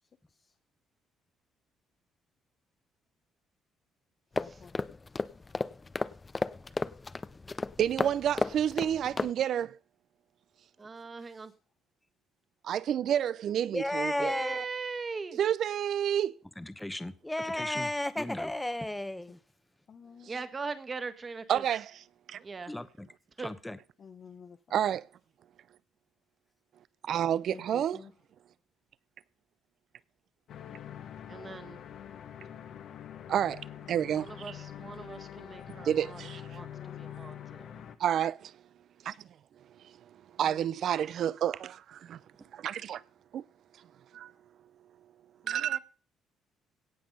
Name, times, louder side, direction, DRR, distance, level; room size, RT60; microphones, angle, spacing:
voice 1, 0.0-0.6 4.4-5.3 10.9-11.5 19.9-20.4 24.0-24.8 27.5-28.1 36.5-37.2 40.4-40.7 44.1-44.3, left 6 dB, 50° left, 0.8 m, -53 dB
sound 1, 4.4-9.3, left 3 dB, 25° left, 0.6 m, -34 dB
voice 2, 7.8-9.8 12.7-14.3 15.3-16.4 21.5-22.4 24.7-25.1 27.0-28.0 33.3-34.5 35.7-36.6 38.0-38.6 39.0-39.3 39.7-42.2 42.5-43.0 43.3-43.4 43.8-43.9 44.1-44.3 45.5-45.8, right 10 dB, 65° right, 0.5 m, -30 dB
voice 3, 10.8-11.5 14.1-15.4 20.3-21.6 22.4-22.7 23.4-23.5 31.3-31.8 34.2-37.8 45.4-45.8, right 4 dB, 35° right, 1.6 m, -40 dB
voice 4, 13.7-14.6 16.6-19.4 22.7-23.1 23.4-23.8, left 1 dB, 10° left, 0.9 m, -33 dB
sound 2, 30.5-38.0, left 10 dB, 65° left, 1.3 m, -45 dB
17.0 x 6.0 x 5.4 m
supercardioid pair, 75°, 0 cm